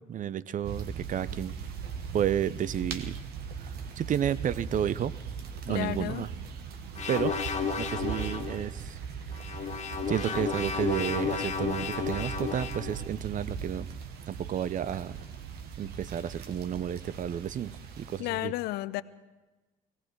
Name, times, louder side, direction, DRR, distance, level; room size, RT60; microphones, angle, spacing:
voice 1, 0.1-1.5 2.1-3.2 4.0-5.1 5.7-6.3 7.1-7.3 7.8-9.0 10.1-13.9 14.3-15.2 15.8-18.5, right 9 dB, 50° right, 17 dB, 0.5 m, -31 dB
sound 1, 0.6-18.2, right 6 dB, 75° right, 1.2 m, -40 dB
voice 2, 5.7-6.3 18.2-19.0, left 18 dB, 80° left, 16 dB, 0.5 m, -32 dB
sound 2, 7.0-8.6 9.3-13.0, left 5 dB, 45° left, 1.7 m, -32 dB
18.0 x 17.0 x 4.6 m, 1.2 s
supercardioid pair, 65°, 16 cm